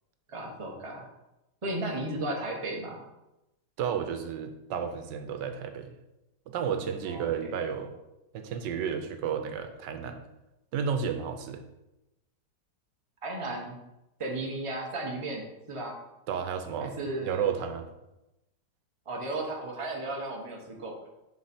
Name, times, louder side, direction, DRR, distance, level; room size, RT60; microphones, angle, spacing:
voice 1, 0.3-1.1 1.6-3.0 7.0-7.2 13.2-13.8 14.2-16.0 16.8-17.5 19.1-21.0, right 2 dB, 20° right, -1 dB, 1.0 m, -34 dB
voice 2, 3.8-6.0 6.5-8.0 8.3-10.2 10.7-11.6 16.3-17.9, right 7 dB, 90° right, 7 dB, 1.4 m, -32 dB
6.4 x 4.7 x 4.2 m, 0.94 s
omnidirectional pair, 1.9 m